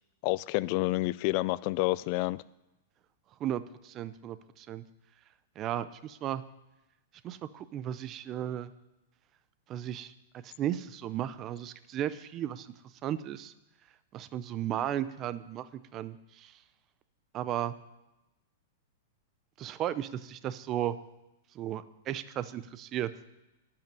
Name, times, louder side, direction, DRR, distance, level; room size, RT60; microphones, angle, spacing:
voice 1, 0.2-2.4, left 20 dB, 40° left, 0.4 m, -29 dB
voice 2, 3.4-4.8 5.6-6.4 7.2-8.7 9.7-10.1 10.4-12.7 13.0-13.5 14.1-16.6 17.3-17.7 19.6-21.0 21.5-23.1, right 11 dB, 25° right, 0.6 m, -35 dB
12.0 x 5.7 x 9.2 m
supercardioid pair, 150°, 0 cm